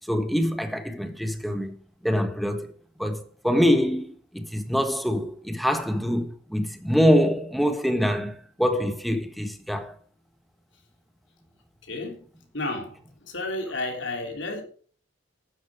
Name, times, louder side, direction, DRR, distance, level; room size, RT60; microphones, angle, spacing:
voice 1, 0.1-1.7 2.0-2.7 3.0-9.9, equal, ahead, 1.4 m, -24 dB
voice 2, 11.8-12.3 12.5-14.6, left 2 dB, 65° left, 3.3 m, -32 dB
11.5 x 10.5 x 4.9 m
head